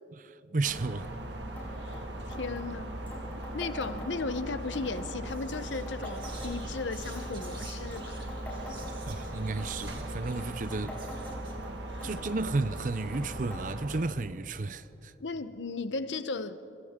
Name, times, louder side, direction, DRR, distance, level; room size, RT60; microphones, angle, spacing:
voice 1, 0.1-1.1 9.1-11.2 12.0-15.1, right 3 dB, 45° right, 0.6 m, -33 dB
sound 1, 0.6-14.0, right 1 dB, 75° right, 1.8 m, -39 dB
sound 2, 1.6-1.7 1.9-2.0 2.3-2.7 3.1-4.4 4.7-5.1 5.5-6.9 7.2-7.5 7.9-9.3 9.6-10.0 10.3-11.7 12.0-12.4 12.8-13.2 13.5-13.6 13.9-14.0 14.8-14.9 15.6-15.7, left 1 dB, 10° left, 5.8 m, -45 dB
voice 2, 2.3-3.0 3.5-8.3 11.9-12.1 15.2-16.6, left 4 dB, 85° left, 0.9 m, -36 dB
Whispering, 4.8-5.0 5.3-13.4, right 2 dB, 25° right, 2.5 m, -50 dB
29.5 x 24.0 x 3.7 m
head